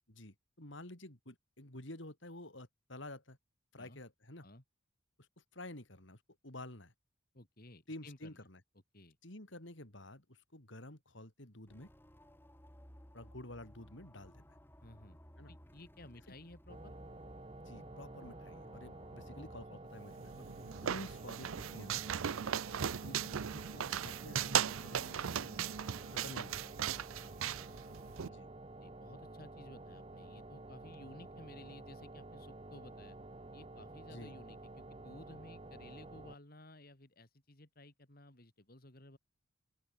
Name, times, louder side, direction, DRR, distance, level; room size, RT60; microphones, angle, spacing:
voice 1, 0.1-3.4 3.7-4.5 5.2-5.3 5.5-6.9 7.9-8.6 9.2-11.9 13.1-14.6 15.4-15.5 17.6-20.5 20.8-22.0 23.0-25.8 26.1-26.7 28.2-28.5 34.1-34.4, left 1 dB, 65° left, 3.7 m, -50 dB
voice 2, 7.3-8.4 8.9-9.2 14.8-15.2 15.5-16.9 22.4-22.5 27.2-27.6 28.2-28.4 28.8-33.2 33.5-39.2, left 1 dB, 45° left, 3.2 m, -56 dB
sound 1, 11.7-19.7, equal, 10° left, 6.2 m, -58 dB
sound 2, 16.7-36.4, right 2 dB, 25° right, 1.0 m, -51 dB
sound 3, 20.1-28.3, right 9 dB, 80° right, 0.5 m, -38 dB
open air
head